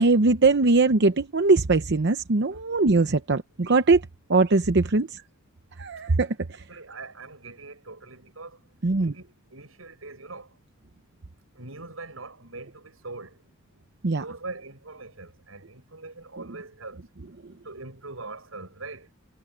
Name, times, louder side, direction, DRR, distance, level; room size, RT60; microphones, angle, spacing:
voice 1, 0.0-4.0 4.3-5.2 5.8-6.3 8.8-9.1 14.0-14.2, right 3 dB, 60° right, 0.8 m, -21 dB
voice 2, 6.7-8.6 9.0-10.6 11.5-13.4 14.2-17.0 17.6-19.1, right 3 dB, 85° right, 7.6 m, -42 dB
head